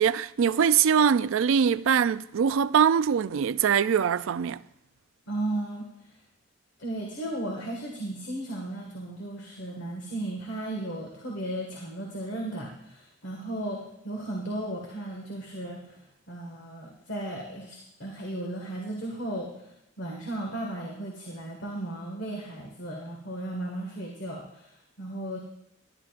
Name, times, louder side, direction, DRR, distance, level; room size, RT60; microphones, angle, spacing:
voice 1, 0.0-4.6, right 7 dB, 75° right, 0.4 m, -23 dB
voice 2, 5.3-5.9 6.8-16.0 16.3-25.4, right 1 dB, 60° left, 1.8 m, -35 dB
19.0 x 11.0 x 2.5 m
head